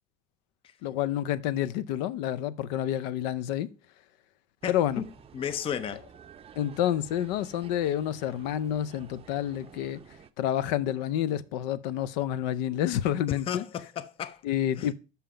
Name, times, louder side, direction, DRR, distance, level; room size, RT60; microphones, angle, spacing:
voice 1, 0.8-3.7 4.7-5.0 6.6-10.0 10.4-13.6 14.4-14.9, left 11 dB, 90° left, 0.6 m, -29 dB
voice 2, 4.6-6.0 13.5-14.4 14.8-14.9, left 8 dB, 25° left, 0.5 m, -34 dB
sound 1, 4.6-10.3, right 8 dB, 30° right, 0.5 m, -51 dB
5.8 x 5.7 x 5.0 m
cardioid pair, 120°, 21 cm